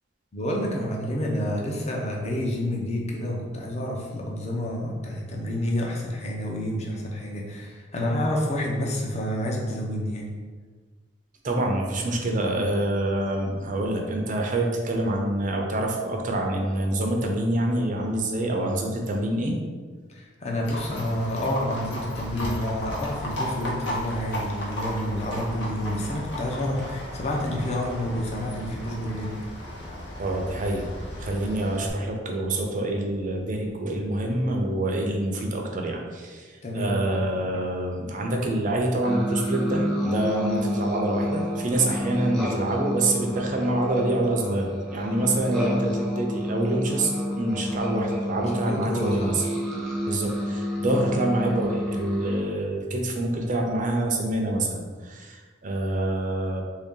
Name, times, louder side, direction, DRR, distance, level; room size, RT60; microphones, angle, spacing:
voice 1, 0.3-10.3 20.1-29.4 36.6-37.5 48.5-49.3 50.9-51.1, left 1 dB, 35° left, -1 dB, 0.6 m, -29 dB
voice 2, 11.4-19.6 30.2-47.1 47.4-49.5 50.1-56.6, right 1 dB, 45° right, 1 dB, 0.6 m, -26 dB
Livestock farm animals working animals, 20.6-31.9, left 1 dB, 65° left, 0.8 m, -35 dB
sound 1, 39.0-52.4, left 1 dB, ahead, 0.7 m, -29 dB
3.4 x 2.7 x 3.6 m, 1.5 s
head